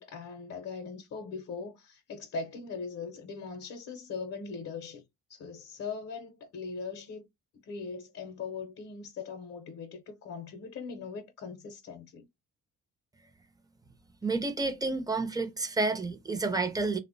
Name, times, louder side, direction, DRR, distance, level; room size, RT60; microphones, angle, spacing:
voice 1, 0.0-5.0 5.3-7.3 7.6-12.3, left 5 dB, 55° left, 0.6 m, -40 dB
voice 2, 14.2-17.0, right 3 dB, 10° right, 0.6 m, -30 dB
3.0 x 2.1 x 2.5 m
cardioid pair, 90°, 30 cm